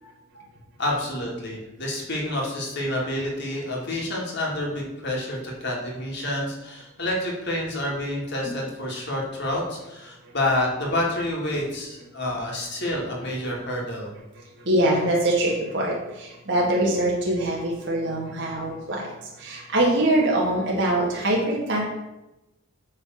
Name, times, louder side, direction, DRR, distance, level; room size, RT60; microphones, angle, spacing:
voice 1, 0.0-0.5 0.8-14.1, left 1 dB, 55° left, -2 dB, 2.4 m, -28 dB
voice 2, 14.7-19.0 19.4-21.8, right 1 dB, 60° right, -3 dB, 1.9 m, -23 dB
8.6 x 4.2 x 6.4 m, 0.97 s
head